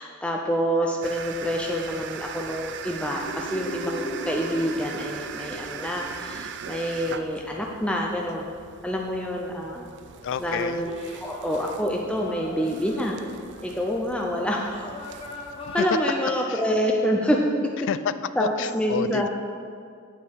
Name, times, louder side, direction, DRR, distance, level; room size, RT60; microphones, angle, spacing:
voice 1, 0.0-8.6 8.8-9.9 10.4-10.9 11.2-13.2 13.6-14.8 15.7-17.4 17.6-17.7 18.4-19.3, equal, 5° left, -1 dB, 0.6 m, -27 dB
sound 1, 1.0-15.9, right 7 dB, 55° right, 0.5 m, -41 dB
sound 2, 3.2-7.9, equal, 75° left, 1.7 m, -37 dB
sound 3, 10.0-10.3 10.8-13.6 14.6-16.3, left 2 dB, 25° left, 1.3 m, -41 dB
voice 2, 10.2-10.9 15.6-16.0 16.5-16.6 17.8-19.3, left 7 dB, 55° left, 13 dB, 0.3 m, -29 dB
9.0 x 8.4 x 4.7 m, 2.2 s
head